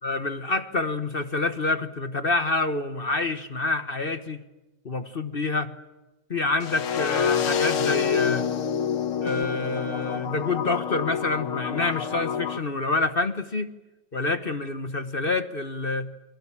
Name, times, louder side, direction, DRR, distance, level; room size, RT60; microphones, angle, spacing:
voice 1, 0.0-4.4 4.8-5.7 6.3-8.5 9.2-13.7 14.1-16.1, left 3 dB, 35° left, 10 dB, 1.0 m, -27 dB
sound 1, 6.6-12.6, left 7 dB, 80° left, 2.2 m, -27 dB
sound 2, 9.3-9.8, right 2 dB, 10° right, 1.3 m, -43 dB
29.0 x 23.5 x 7.4 m, 1.1 s
omnidirectional pair, 2.3 m